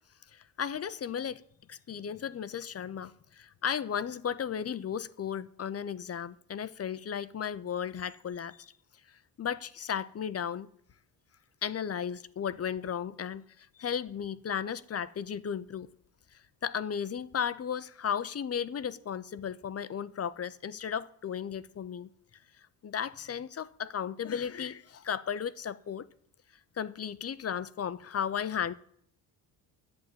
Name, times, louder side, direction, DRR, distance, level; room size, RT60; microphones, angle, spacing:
voice 1, 0.3-1.4 1.7-8.7 9.1-10.7 11.6-15.9 16.6-22.1 22.8-26.1 26.8-28.7, left 8 dB, 35° left, 0.7 m, -35 dB
11.5 x 7.5 x 9.2 m
cardioid pair, 105°, 42 cm